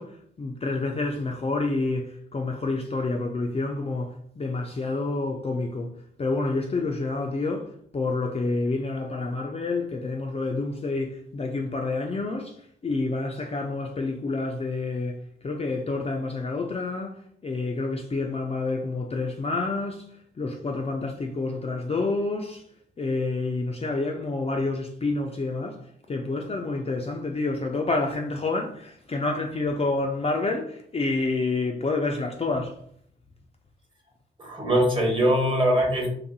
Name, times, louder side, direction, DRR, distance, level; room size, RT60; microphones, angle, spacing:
voice 1, 0.0-5.9 6.2-22.6 23.0-25.8 26.1-32.8, left 3 dB, 30° left, 0.4 m, -28 dB
voice 2, 34.4-36.1, equal, 25° right, 1.3 m, -22 dB
2.6 x 2.4 x 2.6 m
supercardioid pair, 40°, 21 cm